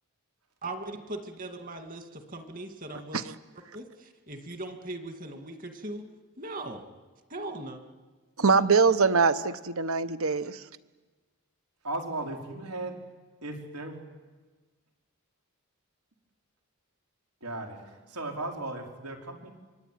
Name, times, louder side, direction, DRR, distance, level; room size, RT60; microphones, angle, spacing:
voice 1, 0.6-3.2 3.7-3.9 4.3-6.0 6.4-6.8 7.3-7.8, right 2 dB, 40° right, 6 dB, 2.3 m, -39 dB
voice 2, 8.4-10.6, right 5 dB, 65° right, 13 dB, 1.1 m, -23 dB
voice 3, 11.8-13.0 13.4-14.0 17.4-19.5, right 2 dB, 85° right, 2 dB, 4.8 m, -36 dB
25.0 x 24.5 x 9.4 m, 1.3 s
head